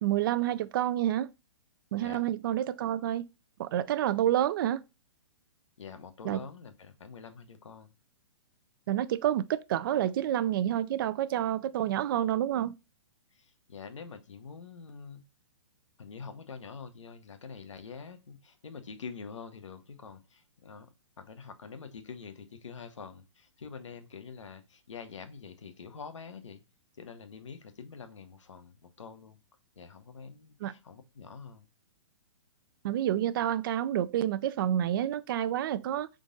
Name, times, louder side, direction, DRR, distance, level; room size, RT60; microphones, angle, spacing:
voice 1, 0.0-1.3 1.9-3.2 3.6-4.8 6.2-6.4 8.9-12.7 30.6-30.7 32.8-36.1, right 11 dB, 45° right, 0.4 m, -28 dB
voice 2, 5.8-7.9 13.3-15.2 16.0-20.9 21.2-26.6 27.0-29.4 29.8-31.7, left 5 dB, 90° left, 0.9 m, -46 dB
3.8 x 3.6 x 3.8 m
hypercardioid pair, 140°, 15 cm